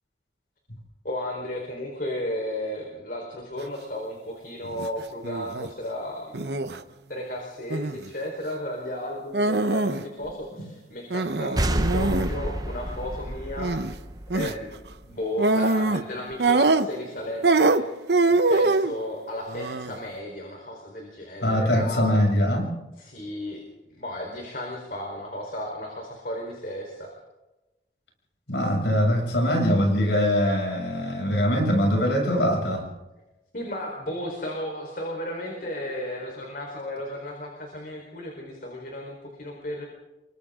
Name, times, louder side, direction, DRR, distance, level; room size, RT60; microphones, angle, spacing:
voice 1, 1.0-6.6 7.1-13.7 14.3-14.7 15.0-17.8 18.2-22.2 23.0-23.6 23.9-27.1 33.5-39.9, left 1 dB, 50° left, 0 dB, 4.3 m, -34 dB
sound 1, 4.6-4.9 5.2-5.7 6.3-6.8 7.7-8.1 9.3-10.0 10.3-10.4 11.1-12.3 13.6-13.9 14.3-14.5 15.4-16.1 16.4-17.1 17.4-18.9 19.5-20.0, right 3 dB, 70° right, 1.0 m, -23 dB
sound 2, 11.6-15.0, right 1 dB, 20° right, 0.9 m, -29 dB
voice 2, 21.4-22.8 28.5-32.9, equal, 80° left, 1 dB, 7.0 m, -22 dB
29.0 x 24.5 x 3.8 m, 1.0 s
head